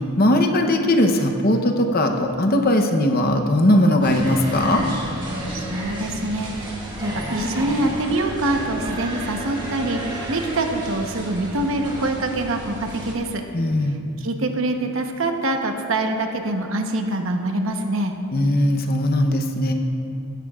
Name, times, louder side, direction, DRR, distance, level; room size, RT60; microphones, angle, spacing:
voice 1, 0.2-4.8 13.5-14.0 18.3-19.7, left 1 dB, 45° left, 5 dB, 0.8 m, -19 dB
sound 1, 4.0-13.1, right 1 dB, 20° right, 1.8 m, -32 dB
voice 2, 5.5-6.7 7.0-13.4 14.2-18.1, right 2 dB, 65° right, 4 dB, 1.0 m, -25 dB
16.0 x 12.5 x 2.4 m, 2.6 s
head